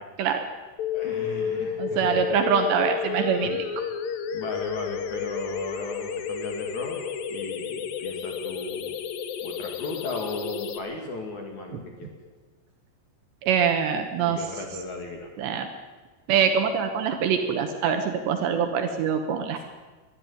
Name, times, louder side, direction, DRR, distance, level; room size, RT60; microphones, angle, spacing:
sound 1, 0.8-10.8, left 7 dB, 85° left, 2.0 m, -31 dB
voice 1, 0.9-2.2 3.4-3.5 4.3-7.0 7.3-9.0 9.4-12.1 14.2-15.3 19.6-19.7, left 2 dB, 45° left, 1 dB, 3.2 m, -36 dB
voice 2, 1.8-3.6 11.7-11.8 13.4-14.4 15.4-15.7 16.3-19.6, right 7 dB, 70° right, 6 dB, 3.0 m, -24 dB
21.5 x 13.0 x 9.7 m, 1.3 s
omnidirectional pair, 5.8 m